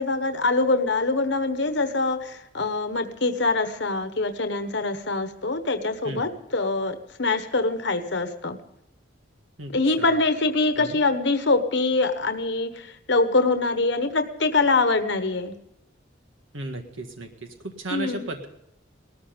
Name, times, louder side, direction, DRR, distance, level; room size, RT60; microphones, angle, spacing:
voice 1, 0.0-8.6 9.7-15.5 17.9-18.3, left 3 dB, 60° left, 8 dB, 1.2 m, -24 dB
voice 2, 9.6-10.2 10.7-11.0 16.5-18.5, right 2 dB, 90° right, 4 dB, 1.8 m, -35 dB
18.5 x 14.0 x 5.2 m, 0.80 s
head